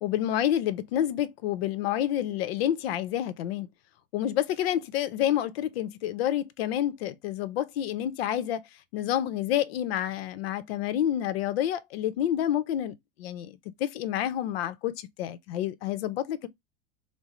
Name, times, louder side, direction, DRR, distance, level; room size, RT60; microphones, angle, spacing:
voice 1, 0.0-3.7 4.1-8.6 8.9-13.5 13.8-16.5, left 11 dB, 75° left, 0.7 m, -28 dB
5.2 x 2.0 x 2.9 m
supercardioid pair, 175°, 30 cm